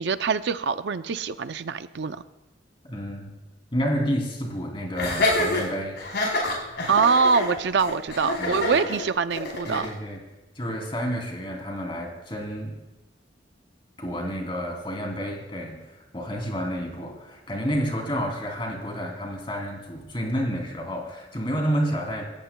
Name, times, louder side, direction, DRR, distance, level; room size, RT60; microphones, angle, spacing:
voice 1, 0.0-2.2 6.9-9.9, right 5 dB, 65° right, 11 dB, 0.5 m, -24 dB
voice 2, 2.9-3.3 3.7-6.0 8.4-8.9 9.7-10.2 10.5-12.8 14.0-22.2, equal, 30° left, 1 dB, 2.9 m, -30 dB
Laughter, 5.0-9.9, left 2 dB, 65° left, 6.0 m, -27 dB
27.5 x 13.5 x 2.2 m, 1.1 s
head